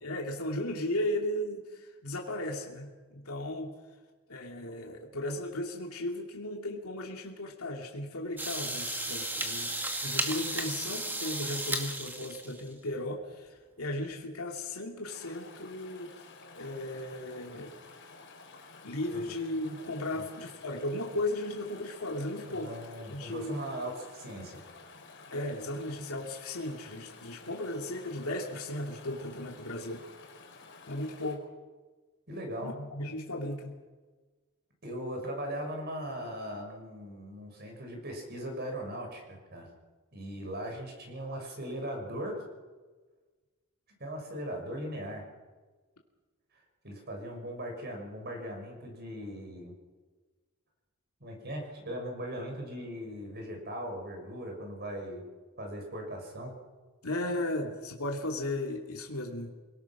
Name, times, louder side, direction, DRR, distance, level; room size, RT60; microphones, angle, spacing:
voice 1, 0.0-3.7 4.3-9.7 10.0-16.3 16.5-17.7 18.8-22.7 23.1-23.6 25.3-30.0 30.9-31.5 32.6-33.8 57.0-59.5, left 1 dB, 80° left, 1 dB, 2.6 m, -36 dB
sound 1, 8.4-12.7, right 1 dB, 10° right, 2.0 m, -34 dB
Chatter / Stream, 15.0-31.4, left 4 dB, 55° left, 4.1 m, -52 dB
voice 2, 22.5-24.6 32.3-32.7 34.8-39.7 40.1-42.4 44.0-45.2 46.8-49.7 51.2-55.2 55.6-56.5, equal, 45° right, 2 dB, 6.4 m, -39 dB
27.5 x 19.0 x 6.1 m, 1.3 s
head